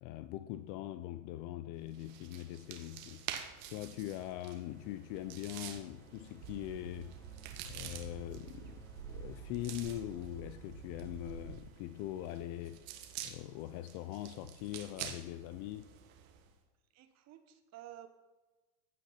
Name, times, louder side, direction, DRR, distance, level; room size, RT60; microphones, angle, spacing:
voice 1, 0.0-3.3 3.7-7.2 7.6-12.9 13.2-15.9, left 14 dB, 40° left, 0.5 m, -42 dB
sound 1, 1.9-16.5, right 10 dB, 60° right, 1.6 m, -49 dB
sound 2, 3.2-13.1, right 1 dB, 5° left, 1.2 m, -60 dB
sound 3, 6.4-11.6, right 7 dB, 85° right, 1.3 m, -49 dB
voice 2, 16.9-18.1, right 12 dB, 35° right, 1.2 m, -52 dB
15.0 x 6.1 x 5.8 m
supercardioid pair, 125°, 49 cm